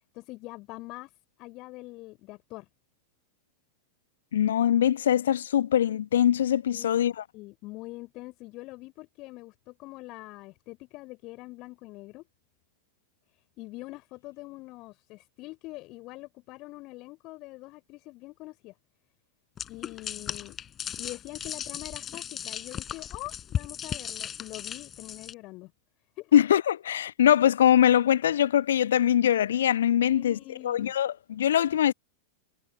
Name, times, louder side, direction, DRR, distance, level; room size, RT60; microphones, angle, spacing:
voice 1, 0.1-1.1 1.4-2.7 6.7-7.1 7.3-12.2 13.6-18.7 19.7-20.6 21.0-25.7 26.2-26.3 30.0-30.9, left 21 dB, 40° left, 3.6 m, -44 dB
voice 2, 4.3-7.2 26.3-30.4 30.6-31.9, left 10 dB, 60° left, 1.1 m, -22 dB
sound 1, 19.6-25.3, left 9 dB, 25° left, 4.9 m, -36 dB
figure-of-eight pair, 90°, 0 cm